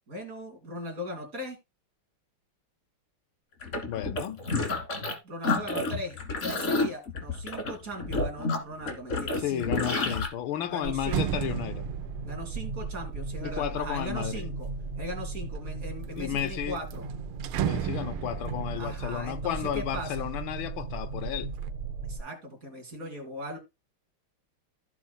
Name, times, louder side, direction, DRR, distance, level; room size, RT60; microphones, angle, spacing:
voice 1, 0.1-1.6 5.2-10.1 10.7-11.3 12.2-14.7 15.0-17.0 18.8-20.3 22.0-23.6, equal, 40° right, 3.2 m, -39 dB
sound 1, 3.6-5.1 5.4-10.3, left 3 dB, 35° left, 2.1 m, -29 dB
voice 2, 3.9-4.4 9.4-11.9 13.4-14.5 16.2-16.8 17.6-21.5, left 11 dB, 75° left, 1.3 m, -33 dB
sound 2, 8.7-9.0 9.4-14.8 15.4-16.0 16.4-16.5 16.8-20.7 21.1-21.7, right 11 dB, 85° right, 1.5 m, -36 dB
sound 3, 10.8-22.2, right 4 dB, 65° right, 0.5 m, -37 dB
15.5 x 6.1 x 2.2 m
omnidirectional pair, 2.4 m